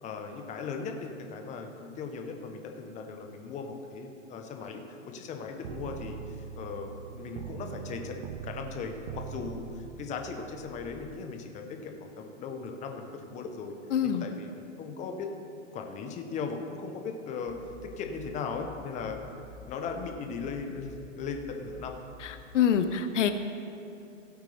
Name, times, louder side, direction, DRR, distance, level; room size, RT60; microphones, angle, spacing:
voice 1, 0.0-8.2 8.4-13.7 14.0-15.3 15.7-17.6 17.8-19.2 19.7-22.0, left 5 dB, 20° left, 4 dB, 0.8 m, -38 dB
sound 1, 5.6-11.2, right 7 dB, 30° right, 0.4 m, -42 dB
voice 2, 13.9-14.3 22.2-23.3, left 8 dB, 65° left, 9 dB, 0.8 m, -26 dB
sound 2, 17.5-22.5, equal, 10° right, 1.1 m, -50 dB
16.5 x 8.2 x 3.4 m, 2.8 s
hypercardioid pair, 125°, 39 cm